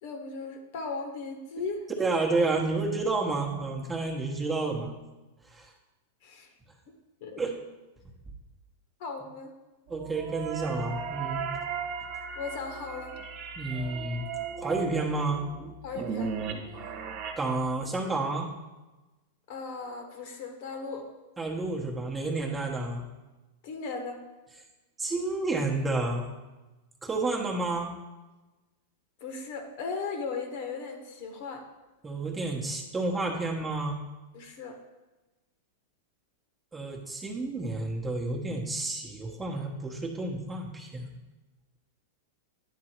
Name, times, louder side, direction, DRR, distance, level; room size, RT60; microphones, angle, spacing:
voice 1, 0.0-1.9 6.2-6.5 7.2-7.4 9.0-9.5 12.3-13.2 15.8-16.3 19.5-21.1 23.6-24.2 29.2-31.6 34.3-34.8, left 4 dB, 60° left, 4 dB, 1.3 m, -37 dB
voice 2, 2.0-4.9 5.5-5.7 7.4-7.5 9.9-11.5 13.6-14.2 14.6-15.4 17.4-18.5 21.4-23.1 25.0-26.3 27.0-27.9 32.0-34.0 36.7-41.1, right 3 dB, 10° right, -1 dB, 1.0 m, -30 dB
sound 1, 9.9-17.3, right 6 dB, 50° right, 1.1 m, -36 dB
10.0 x 3.8 x 4.4 m, 1.1 s
hypercardioid pair, 130°, 0 cm